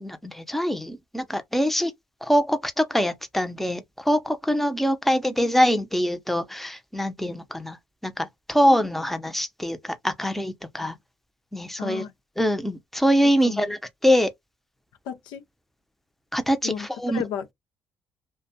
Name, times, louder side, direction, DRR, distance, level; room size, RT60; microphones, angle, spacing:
voice 1, 0.0-1.9 2.2-7.8 8.0-10.9 11.5-12.0 12.4-14.3 16.3-17.2, equal, 5° left, 0.6 m, -24 dB
voice 2, 11.8-12.1 13.4-13.7 15.0-15.4 16.6-17.5, left 8 dB, 80° left, 0.5 m, -33 dB
2.6 x 2.2 x 2.7 m
supercardioid pair, 60°, 7 cm